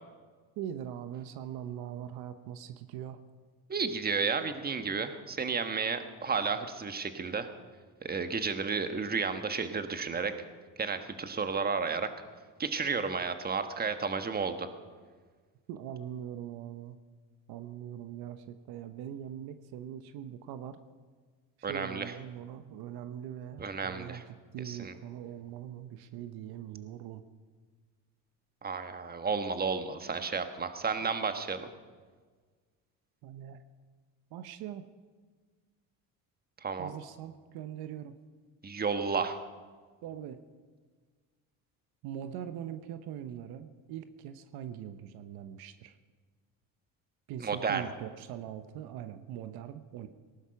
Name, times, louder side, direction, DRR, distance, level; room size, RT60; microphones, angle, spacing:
voice 1, 0.6-3.2 15.7-17.0 17.5-20.8 21.6-24.2 24.5-27.2 33.2-33.6 34.3-34.9 36.8-38.2 40.0-40.4 42.0-46.0 47.3-50.1, right 10 dB, 75° right, 10 dB, 1.0 m, -42 dB
voice 2, 3.7-7.5 8.0-10.3 10.8-12.1 12.6-14.7 21.6-22.1 23.6-24.2 24.6-24.9 28.6-31.7 36.6-36.9 38.6-39.4 47.4-47.9, right 5 dB, 25° right, 8 dB, 1.4 m, -32 dB
19.0 x 11.5 x 5.9 m, 1.5 s
supercardioid pair, 95°, 38 cm